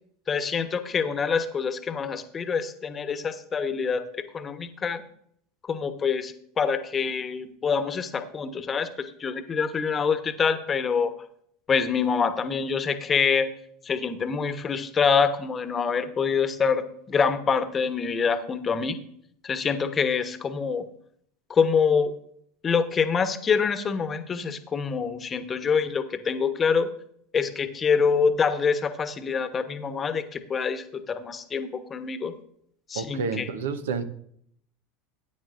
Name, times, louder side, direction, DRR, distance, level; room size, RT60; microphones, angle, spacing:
voice 1, 0.3-5.0 5.6-11.1 11.7-13.5 13.8-19.0 19.4-20.8 21.5-22.1 22.6-26.9 27.3-32.3 32.9-33.5, left 6 dB, 30° left, 10 dB, 1.1 m, -26 dB
voice 2, 32.9-34.0, right 5 dB, 75° right, 10 dB, 0.9 m, -29 dB
14.0 x 9.3 x 2.6 m, 0.68 s
hypercardioid pair, 85°, 0 cm